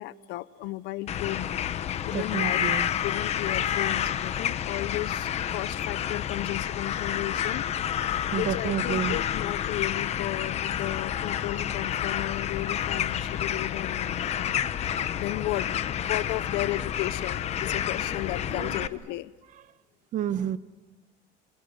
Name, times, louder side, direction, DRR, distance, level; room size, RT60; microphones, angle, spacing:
voice 1, 0.0-1.5 2.1-2.7 3.0-7.7 8.3-14.7 15.0-19.3, left 17 dB, 70° left, 16 dB, 0.7 m, -34 dB
sound 1, 1.1-18.9, left 9 dB, 35° left, 0.9 m, -29 dB
voice 2, 2.1-2.9 8.3-9.2 18.5-18.9 20.1-20.6, right 10 dB, 45° right, 14 dB, 1.0 m, -30 dB
26.5 x 26.5 x 6.5 m, 1.2 s
cardioid pair, 175°, 18 cm